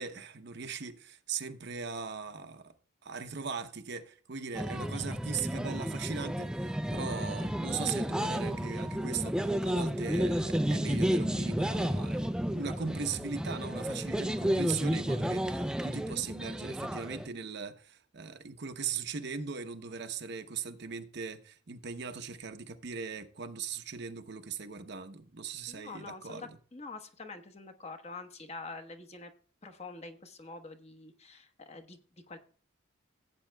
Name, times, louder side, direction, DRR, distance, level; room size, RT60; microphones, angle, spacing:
voice 1, 0.0-2.7 3.0-12.3 12.5-26.6, right 5 dB, 55° right, 0.8 m, -39 dB
sound 1, 4.5-17.3, equal, 5° right, 0.4 m, -32 dB
voice 2, 25.7-29.3 29.6-32.0 32.3-32.4, left 3 dB, 30° left, 1.0 m, -46 dB
16.5 x 8.5 x 2.2 m
head